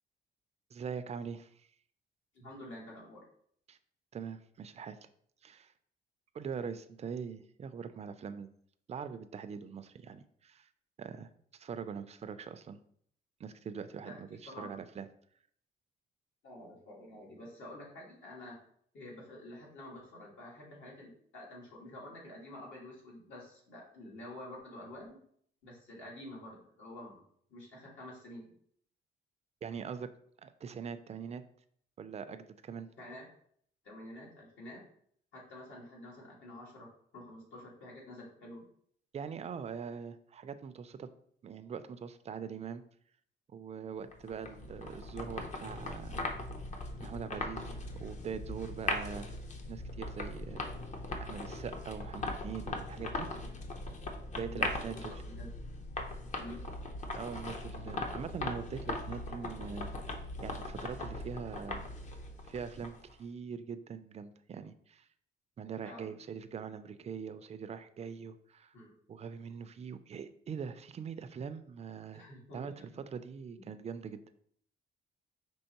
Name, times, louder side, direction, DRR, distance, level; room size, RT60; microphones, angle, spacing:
voice 1, 0.7-1.7 3.7-3.8 4.1-5.0 5.4-5.7 6.3-8.5 8.9-10.7 11.0-12.8 13.4-15.1 29.6-30.1 30.4-31.4 32.0-32.9 39.1-41.1 41.4-42.8 43.5-46.2 47.0-49.3 49.7-50.7 51.2-53.3 54.4-55.1 57.2-59.9 60.4-61.9 62.4-65.1 65.6-68.7 69.1-72.2 72.5-72.7 73.1-74.2, right 6 dB, 35° right, 11 dB, 0.4 m, -42 dB
voice 2, 2.3-3.2 14.0-14.8 16.4-18.6 18.9-25.2 25.6-27.2 27.5-28.5 33.0-33.2 33.8-34.9 35.3-38.6 54.4-55.5 56.4-56.7 65.8-66.1 68.7-68.9 72.1-72.9 73.6-73.7, left 1 dB, 75° left, -3 dB, 1.8 m, -49 dB
sound 1, 44.1-63.1, left 2 dB, 35° left, 0.6 m, -39 dB
5.4 x 3.1 x 2.9 m, 0.63 s
cardioid pair, 90°, 20 cm